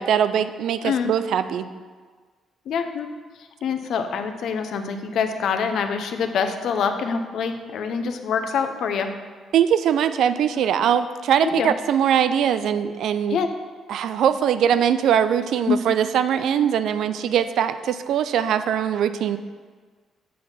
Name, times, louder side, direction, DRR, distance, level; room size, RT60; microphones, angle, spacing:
voice 1, 0.0-1.7 9.5-13.4 13.9-19.4, right 9 dB, 75° right, 12 dB, 0.4 m, -21 dB
voice 2, 2.7-3.1 3.6-9.1 11.4-11.7 13.3-13.5 15.7-15.8, left 6 dB, 70° left, 7 dB, 0.7 m, -25 dB
7.6 x 4.1 x 6.8 m, 1.5 s
cardioid pair, 90°, 0 cm